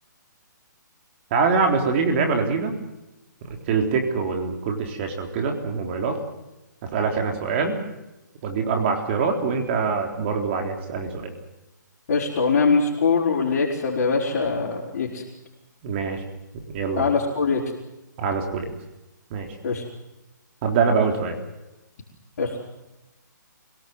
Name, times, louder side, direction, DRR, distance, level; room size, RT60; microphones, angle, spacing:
voice 1, 1.3-2.7 3.4-6.2 6.8-7.8 8.4-11.3 15.8-16.2 16.7-17.1 18.2-18.7 19.3-19.5 20.6-21.4, right 5 dB, 35° right, 3 dB, 3.7 m, -24 dB
voice 2, 12.1-15.2 17.0-17.6 19.6-19.8 22.4-22.6, left 4 dB, 50° left, -6 dB, 4.8 m, -22 dB
27.0 x 18.0 x 7.9 m, 0.98 s
hypercardioid pair, 145°, 11 cm